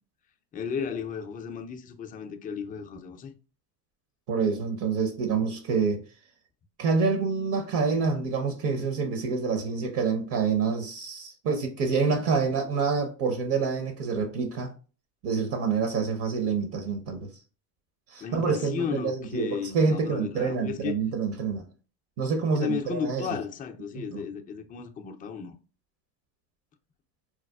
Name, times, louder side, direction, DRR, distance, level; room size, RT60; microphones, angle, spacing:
voice 1, 0.5-3.3 18.2-21.0 22.5-25.5, left 6 dB, 20° left, 0.3 m, -34 dB
voice 2, 4.3-6.0 6.8-14.7 15.2-17.3 18.1-21.6 22.2-23.4 23.9-24.2, right 5 dB, 55° right, 0.8 m, -27 dB
4.1 x 2.2 x 2.2 m
supercardioid pair, 80°, 48 cm